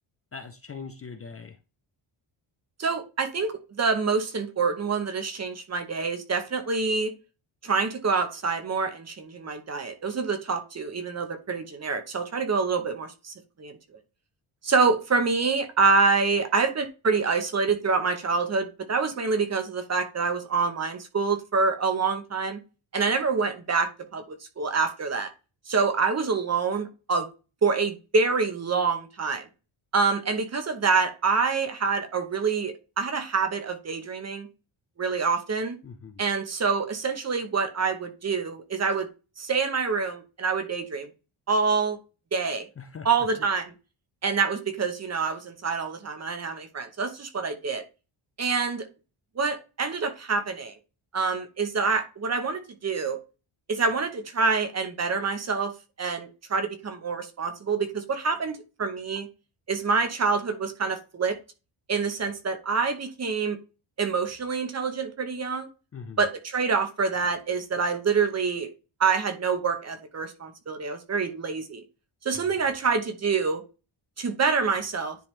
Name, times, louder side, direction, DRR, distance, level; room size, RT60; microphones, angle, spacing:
voice 1, 0.3-1.6 35.8-36.2 42.8-43.1 65.9-66.2 72.3-72.4, left 5 dB, 30° left, 6 dB, 0.5 m, -41 dB
voice 2, 2.8-7.1 7.6-13.8 14.6-22.6 22.9-25.3 25.7-27.3 27.6-29.5 29.9-34.5 35.0-35.8 36.2-39.1 39.4-41.1 41.5-42.0 42.3-42.6 43.0-43.7 44.2-47.8 48.4-48.9 49.4-50.8 51.1-53.2 53.7-55.7 56.0-59.3 59.7-61.4 61.9-63.6 64.0-65.7 66.2-68.7 69.0-71.8 72.2-73.6 74.2-75.2, right 4 dB, 30° right, 8 dB, 0.9 m, -26 dB
10.0 x 3.5 x 3.2 m, 0.31 s
wide cardioid pair, 165°, 50 cm